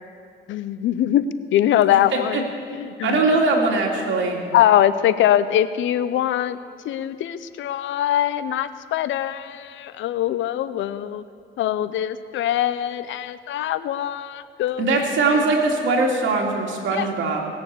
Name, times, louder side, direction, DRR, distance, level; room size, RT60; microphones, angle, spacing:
voice 1, 0.5-1.2 1.5-3.3 4.5-6.6 6.8-11.2 11.6-15.1 15.3-15.4 16.9-17.1, left 11 dB, 75° left, 14 dB, 0.6 m, -22 dB
voice 2, 3.0-4.4 14.8-17.4, right 3 dB, 75° right, 0 dB, 2.6 m, -21 dB
19.5 x 6.9 x 8.2 m, 2.4 s
cardioid pair, 90°, 20 cm